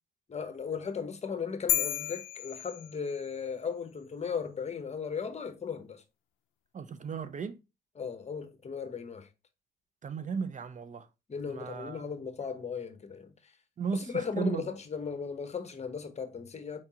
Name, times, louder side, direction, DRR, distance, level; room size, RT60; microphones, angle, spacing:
voice 1, 0.3-6.0 8.0-9.3 11.3-13.5 13.9-16.8, left 6 dB, 35° left, 0.9 m, -36 dB
sound 1, 1.7-3.4, left 13 dB, 75° left, 0.4 m, -32 dB
voice 2, 6.7-7.6 10.0-11.1 11.5-12.0 13.8-14.7, right 6 dB, 40° right, 0.5 m, -35 dB
4.7 x 3.5 x 2.8 m
cardioid pair, 90°, 20 cm